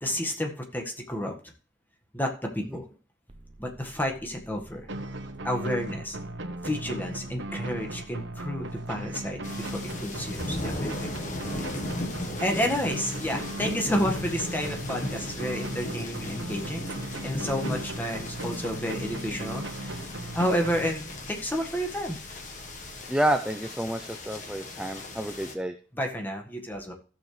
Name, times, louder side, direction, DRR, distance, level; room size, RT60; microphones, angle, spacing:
voice 1, 0.0-1.3 2.1-2.9 3.6-4.8 5.4-6.2 6.6-11.1 12.4-16.9 17.2-20.0 20.3-22.2 25.9-26.9, equal, 10° left, 2 dB, 1.7 m, -30 dB
sound 1, 3.3-23.0, right 2 dB, 35° right, 0.8 m, -52 dB
sound 2, 4.9-21.4, right 2 dB, 85° right, 1.2 m, -37 dB
sound 3, 9.4-25.5, left 2 dB, 45° left, 1.4 m, -37 dB
voice 2, 23.1-25.7, right 1 dB, 5° right, 7 dB, 0.5 m, -29 dB
15.5 x 7.0 x 3.3 m, 0.39 s
head